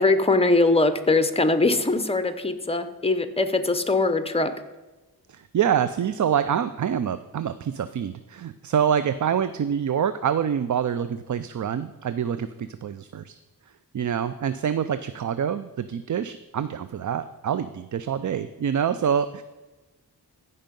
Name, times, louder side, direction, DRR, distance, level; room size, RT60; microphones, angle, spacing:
voice 1, 0.0-4.5, left 2 dB, 15° left, 10 dB, 0.9 m, -21 dB
voice 2, 5.3-13.3 13.9-19.4, right 8 dB, 50° right, 13 dB, 0.5 m, -26 dB
14.5 x 5.5 x 5.3 m, 1.2 s
cardioid pair, 70°, 38 cm